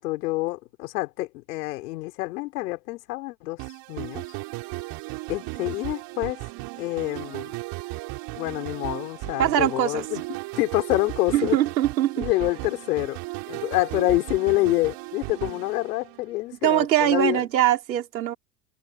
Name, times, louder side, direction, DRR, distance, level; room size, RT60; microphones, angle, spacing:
voice 1, 0.0-4.2 5.3-6.4 6.8-7.6 8.3-10.2 10.6-11.6 12.2-13.2 13.5-17.4, left 20 dB, 65° left, 4.9 m, -27 dB
sound 1, 3.6-16.5, right 24 dB, 50° right, 6.7 m, -36 dB
voice 2, 9.4-10.0 11.3-12.3 16.6-18.3, right 12 dB, 85° right, 4.8 m, -22 dB
hypercardioid pair, 110°, 50 cm